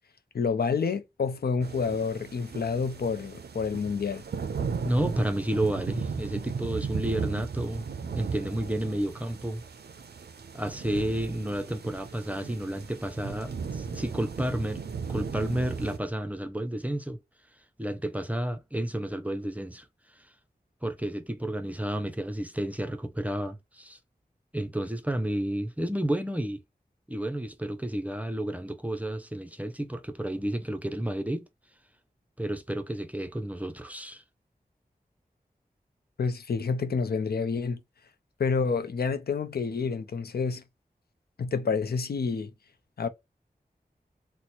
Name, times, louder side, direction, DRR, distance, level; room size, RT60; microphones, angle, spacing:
voice 1, 0.3-4.2 36.2-37.8 38.4-40.6 41.4-42.5 43.0-43.1, left 5 dB, 75° left, 0.4 m, -28 dB
sound 1, 1.6-16.0, right 5 dB, 90° right, 0.4 m, -36 dB
voice 2, 4.8-9.6 10.5-14.8 15.1-17.2 17.8-19.9 20.2-20.3 20.8-24.0 24.5-26.6 27.1-31.5 32.4-34.2, right 1 dB, 10° right, 0.5 m, -31 dB
2.9 x 2.1 x 4.1 m
wide cardioid pair, 55°, 16 cm